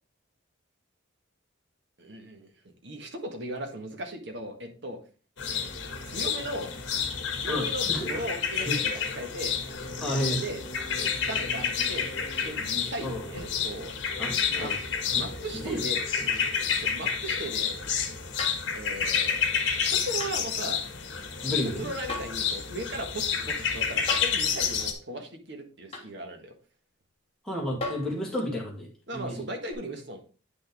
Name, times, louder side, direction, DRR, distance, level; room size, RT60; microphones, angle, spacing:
voice 1, 2.0-5.0 5.5-5.7 6.0-6.7 7.4-9.6 10.4-10.6 11.0-13.9 14.5-14.7 15.1-16.0 16.7-18.1 18.7-20.8 21.8-26.5 29.1-30.2, right 1 dB, 55° right, 4 dB, 1.6 m, -37 dB
sound 1, 5.4-24.9, left 7 dB, 55° left, 1.5 m, -30 dB
voice 2, 7.5-8.1 8.7-8.8 10.0-10.4 13.0-13.3 14.2-14.7 15.1-15.2 15.6-15.8 16.2-16.4 21.4-21.9 27.4-29.4, equal, 5° left, -3 dB, 2.3 m, -31 dB
sound 2, 18.4-18.7 20.2-20.4 22.1-22.4 24.1-24.4 25.9-26.1 27.8-28.2 29.7-29.8, left 3 dB, 30° left, 1.4 m, -35 dB
8.9 x 6.1 x 3.5 m, 0.37 s
head